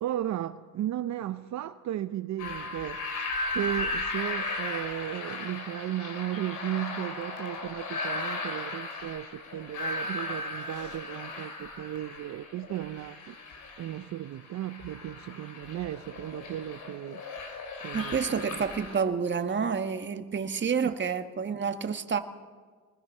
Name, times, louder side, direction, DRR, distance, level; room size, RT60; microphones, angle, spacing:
voice 1, 0.0-3.0 3.5-13.4 13.8-17.2 17.8-18.4 20.8-20.9, right 13 dB, 70° right, 0.7 m, -35 dB
sound 1, 2.4-19.0, left 2 dB, 80° left, 4.1 m, -36 dB
voice 2, 17.9-22.2, right 6 dB, 40° right, 1.5 m, -29 dB
23.0 x 21.0 x 5.6 m
cardioid pair, 90°, 30 cm